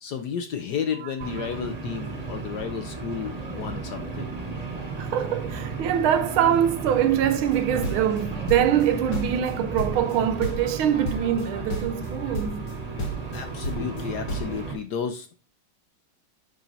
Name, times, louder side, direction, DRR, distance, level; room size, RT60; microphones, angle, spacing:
voice 1, 0.0-4.3 13.3-15.3, left 7 dB, 65° left, 1.1 m, -32 dB
sound 1, 1.2-14.7, right 4 dB, 20° right, 1.2 m, -34 dB
voice 2, 5.0-12.7, right 9 dB, 80° right, 1.5 m, -24 dB
sound 2, 7.5-8.9 9.1-10.2 10.4-10.8 11.1-11.5 11.7-12.1 12.3-12.7 13.0-14.6, equal, 85° left, 2.6 m, -31 dB
10.5 x 4.3 x 4.0 m
omnidirectional pair, 2.3 m